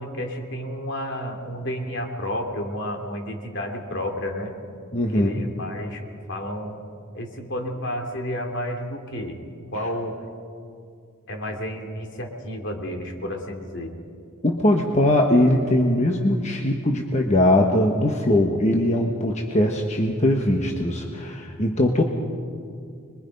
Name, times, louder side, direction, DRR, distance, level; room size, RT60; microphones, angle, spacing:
voice 1, 0.0-4.5 5.1-6.8 7.1-9.4 9.7-10.2 11.3-13.9, equal, 55° left, 3 dB, 2.7 m, -31 dB
voice 2, 4.9-5.4 14.4-22.0, left 1 dB, 35° left, 2 dB, 1.2 m, -21 dB
26.0 x 22.0 x 5.4 m, 2.4 s
head